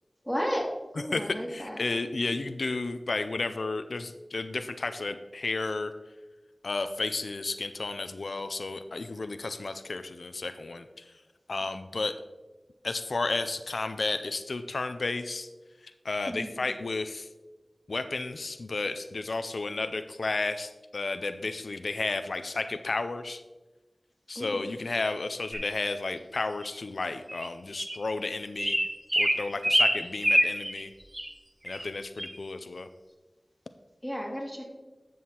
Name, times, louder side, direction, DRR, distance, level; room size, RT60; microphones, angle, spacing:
voice 1, 0.2-1.8 16.3-16.6 24.4-24.6 34.0-34.7, equal, ahead, -2 dB, 2.2 m, -33 dB
voice 2, 1.1-5.9 6.6-11.1 11.5-12.1 12.8-15.5 16.0-17.3 17.9-23.4 24.3-28.9 29.1-30.9 31.6-32.9, left 3 dB, 85° left, 10 dB, 0.3 m, -32 dB
sound 1, 25.5-25.7 26.6-26.7 27.3-27.5 27.8-28.0 28.6-30.8 31.1-31.3 31.7-31.9 32.2-32.3, equal, 25° right, 1.0 m, -26 dB
11.0 x 6.2 x 2.9 m, 1.2 s
wide cardioid pair, 40°, 0 cm